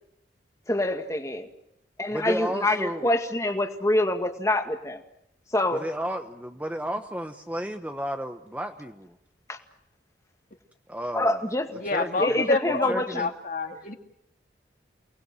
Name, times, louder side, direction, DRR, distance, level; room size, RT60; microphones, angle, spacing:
voice 1, 0.7-1.5 2.0-5.0 5.5-5.8 9.5-9.6 11.1-11.7 12.2-13.2, left 1 dB, 15° left, 5 dB, 2.0 m, -26 dB
voice 2, 2.1-3.1 5.7-9.2 10.9-11.4 11.9-12.4 12.9-13.3, equal, 10° right, 6 dB, 1.0 m, -33 dB
voice 3, 11.8-13.9, left 3 dB, 45° left, 4 dB, 2.3 m, -27 dB
29.0 x 19.5 x 7.8 m, 0.81 s
head